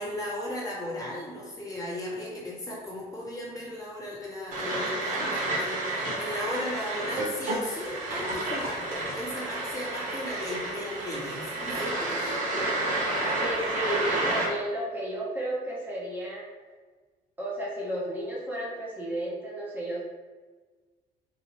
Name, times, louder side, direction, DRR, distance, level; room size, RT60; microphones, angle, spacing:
voice 1, 0.0-12.7, left 1 dB, 20° left, -5 dB, 1.1 m, -36 dB
sound 1, 4.5-14.4, right 2 dB, 50° right, 1.2 m, -30 dB
voice 2, 13.3-16.4 17.4-20.0, right 1 dB, 10° right, -6 dB, 0.9 m, -33 dB
3.8 x 2.8 x 3.1 m, 1.4 s
cardioid pair, 110°, 17 cm